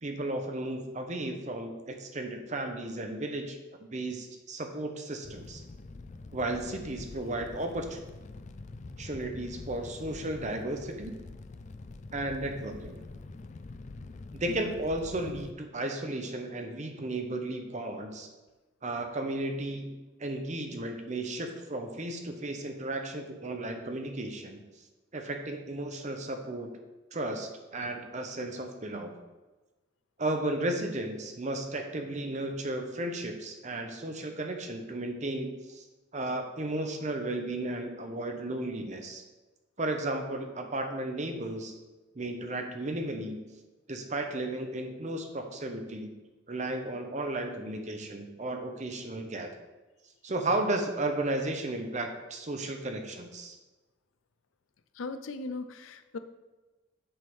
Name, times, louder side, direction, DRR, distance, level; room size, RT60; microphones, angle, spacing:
voice 1, 0.0-5.6 6.3-8.0 9.0-11.2 12.1-13.0 14.3-18.3 18.8-19.9 20.2-24.6 25.1-26.7 27.1-29.1 30.2-35.8 36.1-39.2 39.8-41.7 42.2-43.4 43.9-46.1 46.5-49.5 50.2-53.6, right 2 dB, 35° right, 4 dB, 0.9 m, -34 dB
Fire, 5.2-15.5, left 3 dB, 35° left, 0.4 m, -45 dB
voice 2, 55.0-56.2, left 3 dB, 85° left, 10 dB, 0.6 m, -38 dB
7.8 x 3.7 x 6.2 m, 1.2 s
head